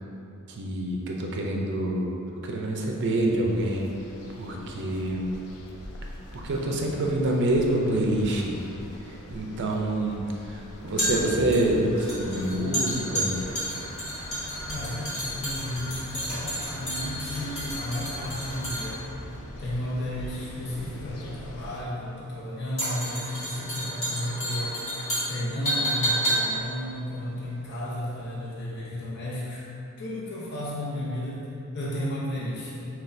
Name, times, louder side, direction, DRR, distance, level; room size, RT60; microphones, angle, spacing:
voice 1, 0.5-3.9 4.4-5.3 6.3-8.6 9.0-13.4, right 1 dB, 55° right, 0 dB, 0.5 m, -27 dB
sound 1, 3.5-21.8, left 1 dB, 90° left, 0.5 m, -44 dB
sound 2, 8.8-28.1 28.4-28.5, equal, 30° left, 1.5 m, -31 dB
sound 3, 10.9-19.4, equal, 5° left, 1.4 m, -44 dB
voice 2, 14.6-19.0 19.6-24.9 25.3-29.7 30.0-32.9, left 1 dB, 50° left, -7 dB, 0.8 m, -33 dB
5.9 x 2.3 x 2.6 m, 2.8 s
head